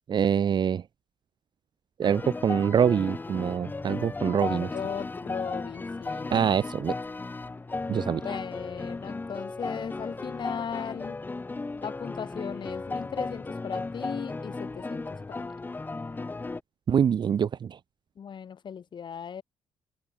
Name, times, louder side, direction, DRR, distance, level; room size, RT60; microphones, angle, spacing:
voice 1, 0.1-0.8 2.0-4.7 6.3-6.9 7.9-8.4 16.9-17.8, right 8 dB, 45° right, 1.1 m, -25 dB
sound 1, 2.0-16.6, left 3 dB, 20° left, 2.0 m, -35 dB
voice 2, 4.4-6.3 8.2-11.2 11.8-15.5 18.2-19.4, left 7 dB, 45° left, 6.7 m, -37 dB
cardioid pair, 125°, 11 cm